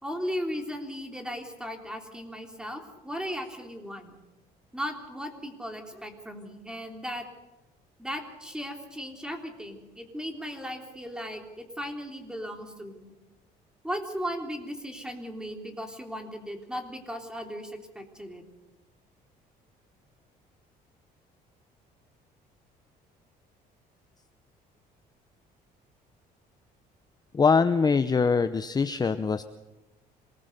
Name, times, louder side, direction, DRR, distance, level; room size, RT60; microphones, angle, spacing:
voice 1, 0.0-4.2 4.7-7.3 8.0-13.1 13.8-18.4, equal, 5° right, 4 dB, 3.5 m, -36 dB
voice 2, 27.3-29.4, left 5 dB, 25° left, 11 dB, 0.8 m, -23 dB
26.5 x 20.0 x 6.7 m, 1.1 s
cardioid pair, 110°, 17 cm